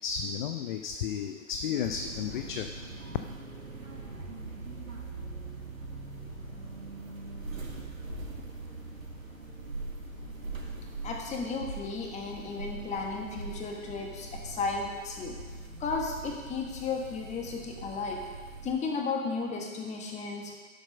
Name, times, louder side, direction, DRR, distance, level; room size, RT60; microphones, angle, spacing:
voice 1, 0.0-2.7, left 7 dB, 40° left, 7 dB, 0.5 m, -33 dB
sound 1, 1.8-18.7, right 3 dB, 85° right, 1.7 m, -42 dB
voice 2, 11.0-15.3 15.8-18.2 18.6-20.5, left 4 dB, 15° left, 1 dB, 1.6 m, -34 dB
11.5 x 7.5 x 5.2 m, 1.5 s
figure-of-eight pair, 115°, 40 cm